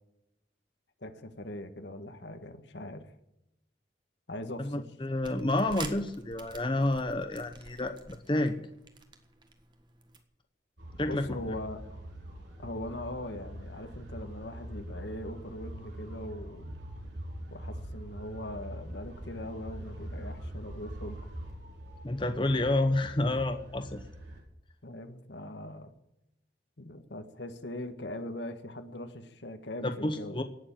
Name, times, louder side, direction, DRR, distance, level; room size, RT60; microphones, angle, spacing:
voice 1, 1.0-3.1 4.3-4.8 11.0-11.8 12.6-16.8 17.5-21.2 24.8-25.9 26.8-30.4, left 1 dB, 75° left, 8 dB, 1.6 m, -41 dB
voice 2, 4.6-8.6 11.0-11.4 22.0-24.0 29.8-30.4, left 1 dB, 25° left, 8 dB, 0.9 m, -29 dB
sound 1, 5.1-10.2, right 4 dB, 25° right, 1.5 m, -48 dB
sound 2, 10.8-24.4, right 1 dB, 85° right, 4.7 m, -43 dB
18.0 x 7.1 x 8.9 m, 0.83 s
head